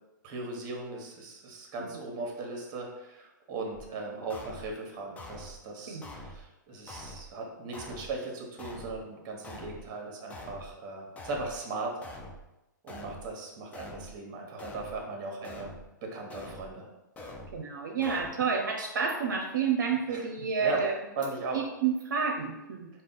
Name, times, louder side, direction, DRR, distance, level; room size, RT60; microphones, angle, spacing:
voice 1, 0.2-11.9 12.8-15.7 16.0-16.9 20.1-20.2 20.6-20.8 21.2-21.6, right 3 dB, 35° right, 1 dB, 1.2 m, -38 dB
sound 1, 3.7-3.9 4.3-4.7 5.2-5.6 6.0-6.4 6.9-7.3 7.7-8.2 8.6-9.0 9.4-9.9 10.3-10.7 11.2-11.6 12.0-12.4 12.9-13.3 13.7-14.2 14.6-15.0 15.4-15.9 16.3-16.7 17.2-17.6 18.0-18.3, left 1 dB, 15° left, 0.6 m, -44 dB
voice 2, 17.5-20.9 21.5-22.9, right 6 dB, 70° right, 0 dB, 0.6 m, -29 dB
4.8 x 2.4 x 4.0 m, 0.96 s
hypercardioid pair, 115°, 11 cm